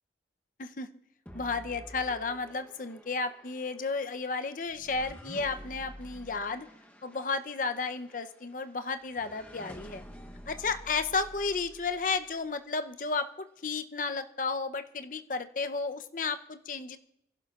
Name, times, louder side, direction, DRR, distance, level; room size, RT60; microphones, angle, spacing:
voice 1, 1.3-6.7 7.0-10.0 10.5-17.0, left 4 dB, 45° left, 9 dB, 0.7 m, -33 dB
sound 1, 1.3-12.6, equal, 10° left, 0.9 m, -50 dB
27.0 x 11.5 x 2.4 m, 0.81 s
head